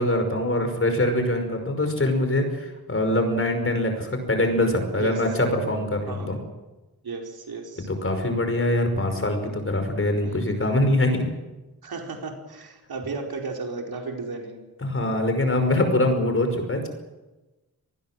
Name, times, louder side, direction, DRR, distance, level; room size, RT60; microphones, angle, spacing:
voice 1, 0.0-6.4 7.8-11.3 14.8-16.9, left 1 dB, 35° left, 6 dB, 5.6 m, -23 dB
voice 2, 7.0-7.9 10.2-10.5 11.8-14.6, right 4 dB, 75° right, 2 dB, 4.6 m, -34 dB
26.0 x 19.5 x 7.7 m, 1.1 s
wide cardioid pair, 130°, 37 cm